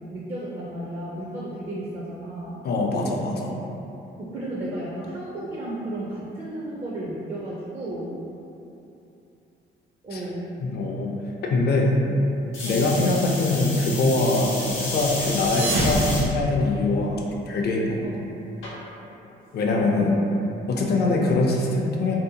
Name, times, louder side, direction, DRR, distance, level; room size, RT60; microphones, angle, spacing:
voice 1, 0.1-2.6 4.2-8.2 10.0-10.6 12.0-12.1 12.7-13.0 18.0-18.2 19.8-20.2 20.8-21.1, right 1 dB, 30° right, -5 dB, 0.4 m, -33 dB
voice 2, 2.6-3.6 10.1-10.2 10.6-11.1 11.4-12.0 12.6-17.9 19.5-20.2 20.7-22.1, left 2 dB, 55° left, -1 dB, 0.4 m, -23 dB
sound 1, 12.5-16.2 16.9-17.3 18.6-18.7, left 2 dB, 90° left, 0.8 m, -31 dB
sound 2, 15.2-17.1, right 1 dB, 60° right, 0.7 m, -27 dB
2.7 x 2.1 x 2.7 m, 2.8 s
cardioid pair, 90°, 20 cm